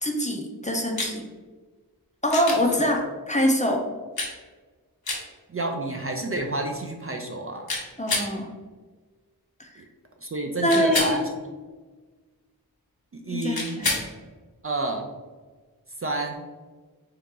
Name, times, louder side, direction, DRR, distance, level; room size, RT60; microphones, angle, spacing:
voice 1, 0.0-1.2 2.2-3.8 8.0-8.5 9.6-9.7 10.6-11.2 13.3-13.9, equal, 20° left, 1 dB, 0.5 m, -24 dB
sound 1, 1.0-1.1 2.3-2.6 4.2-4.3 5.0-5.2 7.7-8.3 10.7-11.2 13.5-14.1 16.3-16.4, left 2 dB, 70° left, 1.1 m, -28 dB
voice 2, 5.5-7.7 9.8-9.9 10.2-11.3 13.1-13.7 14.6-15.1 16.0-16.4, right 2 dB, 35° right, 3 dB, 0.4 m, -29 dB
3.7 x 2.9 x 3.6 m, 1.4 s
wide cardioid pair, 65°, 38 cm